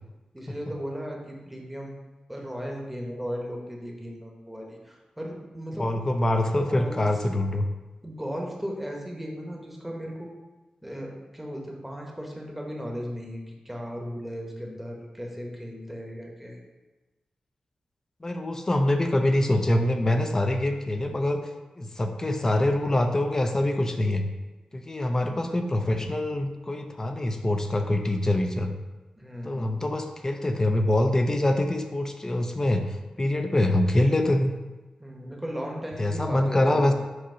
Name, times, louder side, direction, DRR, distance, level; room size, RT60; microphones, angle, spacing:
voice 1, 0.3-1.9 2.3-5.9 6.7-7.1 8.0-10.3 10.8-16.6 25.1-25.5 29.2-29.8 35.0-36.9, equal, 5° right, -1 dB, 1.1 m, -36 dB
voice 2, 5.8-7.7 18.2-21.5 21.8-24.3 24.7-28.7 29.4-34.5 36.0-36.9, left 1 dB, 25° left, 5 dB, 0.6 m, -24 dB
7.7 x 2.9 x 5.6 m, 1.2 s
wide cardioid pair, 115°, 2 cm